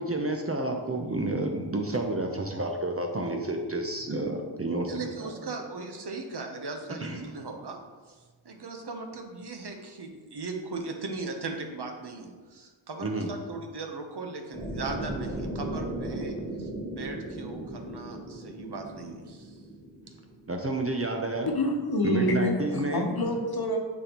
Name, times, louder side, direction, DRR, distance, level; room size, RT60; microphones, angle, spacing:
voice 1, 0.0-5.3 7.0-7.2 13.0-13.3 20.5-21.5 22.0-23.1, right 2 dB, 30° right, 2 dB, 0.6 m, -30 dB
voice 2, 4.9-7.8 8.4-19.6, right 3 dB, 55° right, 4 dB, 0.9 m, -38 dB
sound 1, 14.5-20.6, right 1 dB, ahead, 1.2 m, -37 dB
voice 3, 21.5-23.8, left 1 dB, 50° left, 2 dB, 1.1 m, -27 dB
8.4 x 4.2 x 3.0 m, 1.4 s
wide cardioid pair, 75°, 48 cm